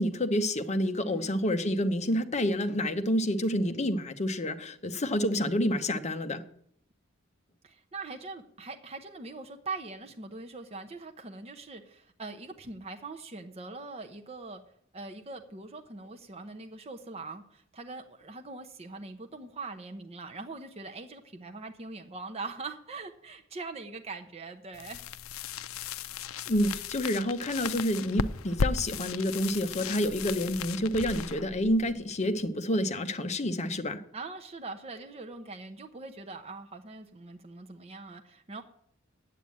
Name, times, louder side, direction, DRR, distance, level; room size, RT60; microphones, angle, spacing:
voice 1, 0.0-6.4 26.5-34.0, left 1 dB, 35° left, 8 dB, 0.8 m, -28 dB
voice 2, 1.1-1.4 7.6-14.6 14.9-25.0 31.0-31.3 34.1-38.6, right 3 dB, 30° right, 5 dB, 0.8 m, -42 dB
sound 1, 24.7-32.5, left 5 dB, 75° left, 0.5 m, -36 dB
9.0 x 8.4 x 8.5 m, 0.68 s
head